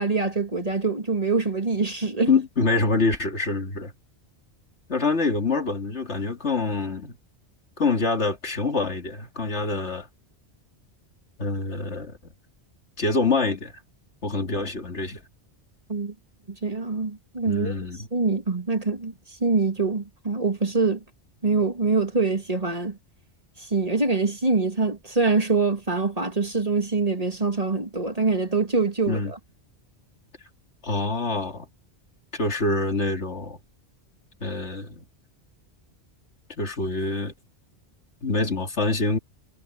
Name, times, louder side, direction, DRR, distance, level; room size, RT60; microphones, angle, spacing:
voice 1, 0.0-2.3 15.9-16.1 16.5-17.7 18.1-19.1 19.4-21.0 21.4-23.0 23.6-29.4, right 4 dB, 35° right, 2.4 m, -24 dB
voice 2, 2.3-3.9 4.9-7.1 7.8-10.1 11.4-12.3 13.0-13.8 14.2-15.2 17.5-18.1 29.1-29.3 30.8-31.7 32.3-33.6 34.4-35.0 36.6-37.3 38.2-39.2, left 3 dB, 90° left, 2.9 m, -25 dB
omnidirectional pair, 1.1 m